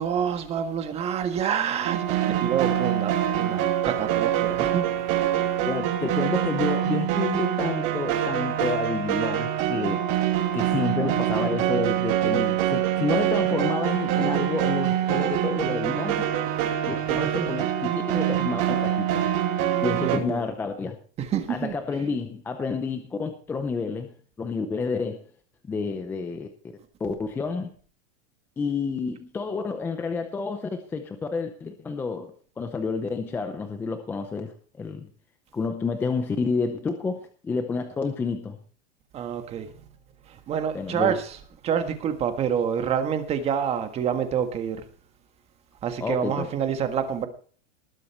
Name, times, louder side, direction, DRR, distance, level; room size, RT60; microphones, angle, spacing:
voice 1, 0.0-4.8 10.6-10.7 17.1-17.5 20.0-20.4 21.2-21.7 39.1-39.7 40.3-41.3 41.6-44.8 45.8-47.3, right 8 dB, 20° right, 1.5 m, -27 dB
sound 1, 1.8-20.2, right 11 dB, 35° right, 2.5 m, -25 dB
voice 2, 5.6-10.1 10.5-16.3 16.9-19.3 19.8-21.0 21.5-25.2 25.7-26.5 27.0-27.7 28.6-35.1 35.5-38.6 40.7-41.2 46.0-46.5, left 4 dB, 5° left, 0.6 m, -29 dB
19.5 x 8.3 x 4.4 m
supercardioid pair, 175°, 35 cm